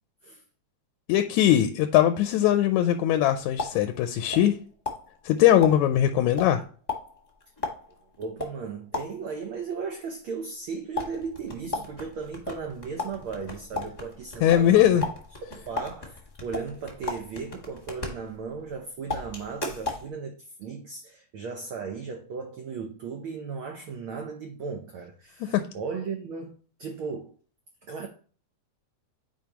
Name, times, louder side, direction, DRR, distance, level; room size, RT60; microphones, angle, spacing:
voice 1, 1.1-4.6 5.3-6.6 14.4-15.0 25.5-25.7, left 11 dB, 85° left, 1.9 m, -20 dB
sound 1, 3.1-4.6 4.9-9.4 10.9-18.7 19.1-20.1, left 3 dB, 20° left, 1.0 m, -36 dB
voice 2, 8.2-15.1 15.5-26.5 26.8-27.3 27.8-28.1, right 5 dB, 75° right, 1.2 m, -36 dB
9.3 x 4.9 x 2.9 m
omnidirectional pair, 3.3 m